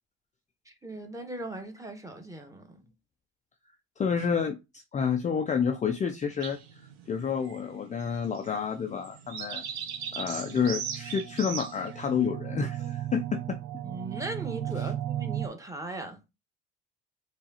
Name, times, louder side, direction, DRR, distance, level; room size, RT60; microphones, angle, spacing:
voice 1, 0.7-2.8 13.8-16.2, right 2 dB, 10° right, 1.2 m, -39 dB
voice 2, 4.0-9.6 10.1-13.6 14.8-14.9, left 6 dB, 25° left, 0.5 m, -29 dB
sound 1, 6.4-12.2, right 7 dB, 85° right, 0.7 m, -39 dB
sound 2, 9.8-15.5, right 12 dB, 45° right, 0.5 m, -36 dB
4.7 x 2.5 x 2.8 m
hypercardioid pair, 70°, 31 cm